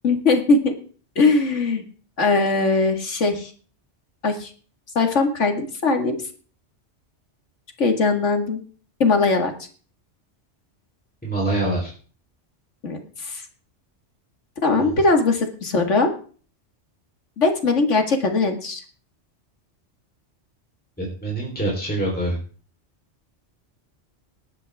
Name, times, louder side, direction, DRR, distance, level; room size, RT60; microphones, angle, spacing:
voice 1, 0.0-0.7 1.2-1.8 2.2-3.5 4.2-4.5 5.0-6.2 7.8-8.6 9.0-9.5 12.8-13.4 14.6-16.1 17.4-18.8, left 3 dB, 90° left, 5 dB, 2.4 m, -20 dB
voice 2, 11.2-11.9 14.8-14.9 21.0-22.4, right 1 dB, 10° left, -3 dB, 3.8 m, -25 dB
19.5 x 9.9 x 3.6 m, 0.41 s
omnidirectional pair, 1.2 m